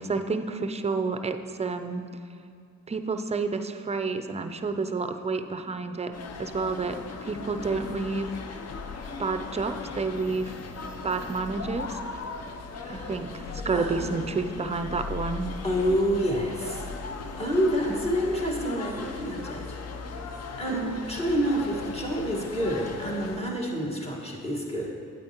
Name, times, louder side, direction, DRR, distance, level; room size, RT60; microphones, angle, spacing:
voice 1, 0.0-2.1 2.9-6.1 6.4-8.3 9.2-10.5 11.0-12.0 12.9-15.5 20.7-21.0, right 4 dB, 20° right, 8 dB, 0.4 m, -30 dB
sound 1, 6.1-23.4, left 4 dB, 55° left, 0.7 m, -38 dB
voice 2, 12.8-13.2 13.7-14.1 15.6-16.9 17.4-19.6 20.6-24.9, equal, 20° left, -2 dB, 1.6 m, -28 dB
8.7 x 8.6 x 2.9 m, 2.4 s
cardioid pair, 80°, 31 cm